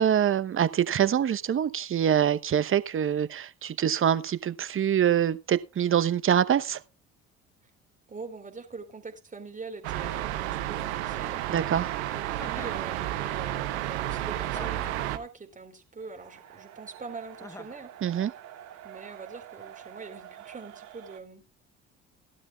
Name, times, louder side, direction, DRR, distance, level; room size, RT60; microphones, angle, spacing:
voice 1, 0.0-6.8 11.5-11.9 18.0-18.3, right 9 dB, 40° right, 0.9 m, -25 dB
voice 2, 8.1-11.4 12.1-18.3 18.8-21.4, right 4 dB, 25° right, 4.0 m, -43 dB
sound 1, 9.8-15.2, right 13 dB, 85° right, 1.0 m, -31 dB
Chuckle chortle, 12.4-12.9 14.5-15.1 17.4-17.8, left 2 dB, 10° left, 1.1 m, -44 dB
sound 2, 16.0-21.2, right 11 dB, 65° right, 2.5 m, -47 dB
18.0 x 12.0 x 2.4 m
hypercardioid pair, 60°, 33 cm